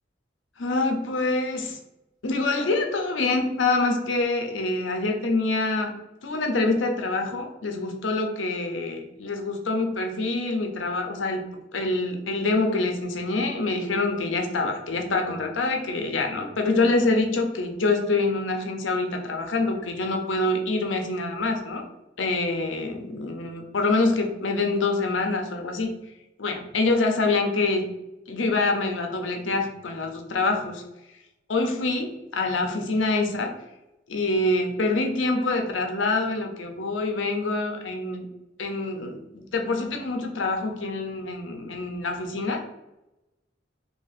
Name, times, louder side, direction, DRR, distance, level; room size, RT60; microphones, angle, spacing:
voice 1, 0.6-1.8 2.2-5.9 6.2-21.8 22.2-26.0 26.4-27.8 28.3-30.8 31.5-33.5 34.1-38.3 38.6-42.6, left 3 dB, 85° left, 4 dB, 0.6 m, -26 dB
2.9 x 2.7 x 4.0 m, 0.94 s
head